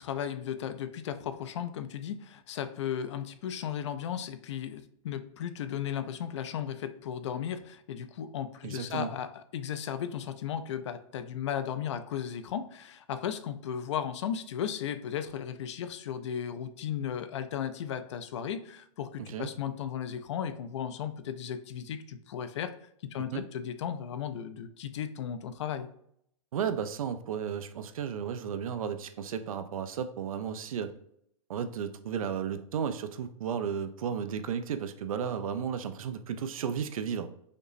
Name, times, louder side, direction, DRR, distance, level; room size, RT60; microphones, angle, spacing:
voice 1, 0.0-25.9, left 9 dB, 60° left, 10 dB, 0.4 m, -35 dB
voice 2, 8.6-9.1 19.2-19.5 23.3-23.4 26.5-30.9 31.5-37.3, right 7 dB, 85° right, 10 dB, 0.4 m, -34 dB
5.1 x 2.0 x 2.5 m, 0.71 s
hypercardioid pair, 165°, 17 cm